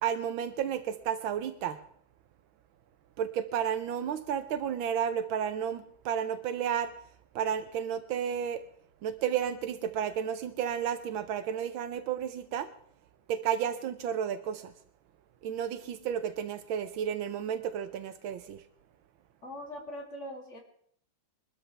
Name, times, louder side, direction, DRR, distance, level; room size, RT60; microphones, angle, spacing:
voice 1, 0.0-1.8 3.2-6.9 7.3-8.6 9.0-12.7 13.3-14.7 15.4-18.6, right 8 dB, 80° right, 10 dB, 1.5 m, -32 dB
voice 2, 19.4-20.6, equal, 35° left, 0 dB, 3.1 m, -41 dB
22.5 x 13.0 x 3.4 m, 0.63 s
omnidirectional pair, 2.2 m